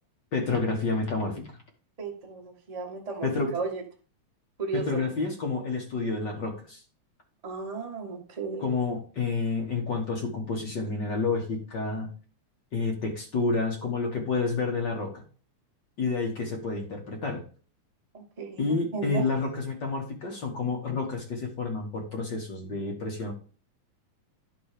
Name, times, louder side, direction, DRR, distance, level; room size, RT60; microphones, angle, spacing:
voice 1, 0.3-1.6 3.2-3.5 4.7-6.8 8.6-12.1 12.7-15.2 16.0-17.4 18.6-23.3, left 3 dB, 45° left, 1 dB, 1.7 m, -29 dB
voice 2, 2.0-3.8 4.6-5.1 7.4-8.6 18.1-19.3, right 4 dB, 30° right, 0 dB, 0.7 m, -35 dB
11.0 x 4.0 x 5.0 m, 0.38 s
omnidirectional pair, 3.5 m